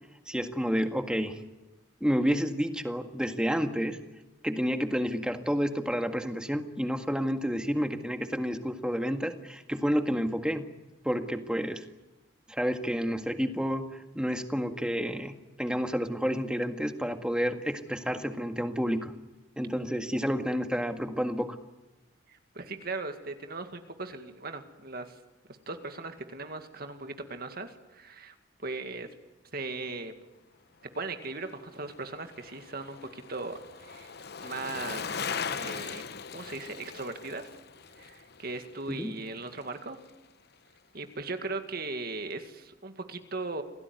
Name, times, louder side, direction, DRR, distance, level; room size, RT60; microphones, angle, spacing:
voice 1, 0.3-1.4 2.0-4.0 4.4-10.6 11.0-11.8 12.5-19.1 19.6-21.6 39.0-39.1, equal, 5° right, 6 dB, 1.8 m, -30 dB
voice 2, 22.3-25.2 25.7-28.3 28.6-29.1 29.5-30.1 30.9-34.1 34.4-35.2 35.5-36.1 36.3-37.5 38.0-40.0 40.9-43.6, right 3 dB, 50° right, 7 dB, 2.1 m, -38 dB
Bicycle, 31.4-39.8 40.1-40.2, left 6 dB, 55° left, 0.9 m, -40 dB
27.5 x 18.0 x 9.6 m, 1.1 s
head